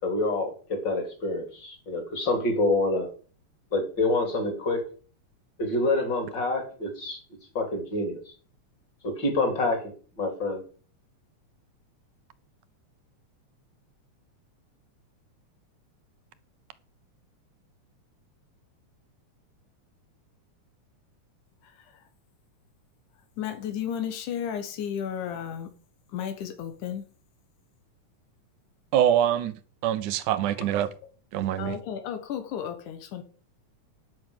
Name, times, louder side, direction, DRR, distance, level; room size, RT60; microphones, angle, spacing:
voice 1, 0.0-3.1 3.7-4.8 5.6-7.2 7.5-8.2 9.0-10.6, left 2 dB, 35° left, 3.5 m, -27 dB
voice 2, 21.6-22.0 23.4-25.7 26.1-27.1 30.5-30.6 31.6-33.2, left 9 dB, 90° left, 2.8 m, -33 dB
voice 3, 28.9-29.5 29.8-30.9 31.3-31.8, right 10 dB, 85° right, 2.4 m, -24 dB
10.5 x 6.1 x 7.7 m
omnidirectional pair, 3.4 m